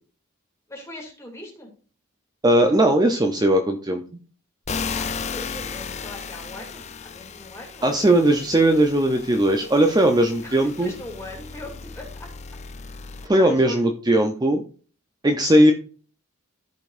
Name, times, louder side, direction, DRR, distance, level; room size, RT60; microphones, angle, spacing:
voice 1, 0.7-1.7 4.9-8.2 10.4-11.7 11.9-12.3 13.2-13.8, left 1 dB, 15° left, -1 dB, 2.6 m, -40 dB
voice 2, 2.4-4.0 7.8-10.9 13.3-14.6 15.2-15.7, right 1 dB, 20° right, 4 dB, 0.6 m, -18 dB
sound 1, 4.7-13.3, left 5 dB, 30° left, 0.5 m, -35 dB
14.5 x 5.2 x 2.6 m, 0.40 s
head